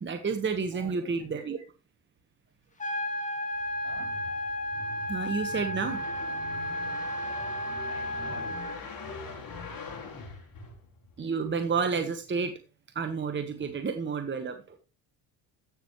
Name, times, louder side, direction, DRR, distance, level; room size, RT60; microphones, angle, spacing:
voice 1, 0.0-1.6 5.1-6.0 11.2-12.5 12.9-14.8, right 5 dB, 25° right, 1.2 m, -30 dB
voice 2, 0.6-1.6 3.8-4.2 7.8-8.9, right 6 dB, 65° right, 3.7 m, -49 dB
sound 1, 2.8-8.8, left 1 dB, 15° left, 2.3 m, -33 dB
sound 2, 3.6-11.2, left 3 dB, 50° left, 4.3 m, -43 dB
14.0 x 6.3 x 3.1 m
supercardioid pair, 75°, 44 cm